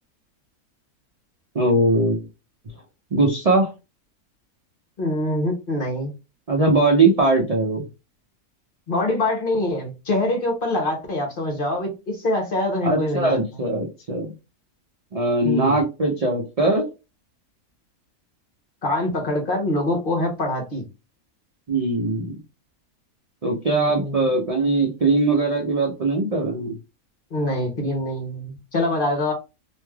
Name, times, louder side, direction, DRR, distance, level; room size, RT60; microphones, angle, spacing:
voice 1, 1.5-2.2 3.1-3.7 6.5-7.8 12.8-14.3 15.1-16.9 21.7-22.4 23.4-26.7, right 2 dB, 55° right, 0.4 m, -20 dB
voice 2, 5.0-6.1 8.9-13.6 15.4-15.8 18.8-20.8 23.7-24.3 27.3-29.3, left 1 dB, 45° left, 0.9 m, -24 dB
3.2 x 2.6 x 2.3 m
omnidirectional pair, 1.5 m